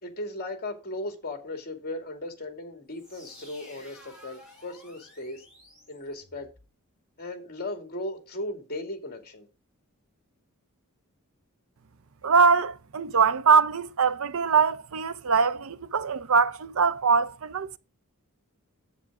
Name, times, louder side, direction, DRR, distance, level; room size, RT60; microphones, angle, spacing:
voice 1, 0.0-5.4 5.9-6.5 7.2-9.5, left 1 dB, 45° left, 2.5 m, -37 dB
sound 1, 2.9-6.7, left 1 dB, 5° right, 6.2 m, -52 dB
voice 2, 12.2-17.8, right 5 dB, 70° right, 0.7 m, -22 dB
9.8 x 8.1 x 3.7 m
head